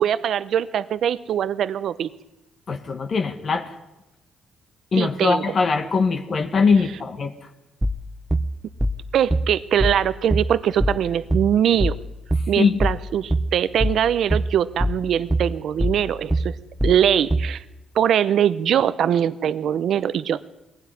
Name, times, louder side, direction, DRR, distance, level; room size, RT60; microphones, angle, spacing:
voice 1, 0.0-2.1 4.9-5.4 9.1-12.0 12.5-16.6 16.8-17.6 17.9-20.4, right 9 dB, 70° right, 15 dB, 0.9 m, -22 dB
voice 2, 2.7-3.7 4.9-7.3 12.6-12.7, left 4 dB, 45° left, 5 dB, 1.8 m, -21 dB
sound 1, 7.8-17.6, right 1 dB, 10° right, 1.0 m, -23 dB
22.0 x 16.5 x 9.9 m, 0.95 s
cardioid pair, 90°, 0 cm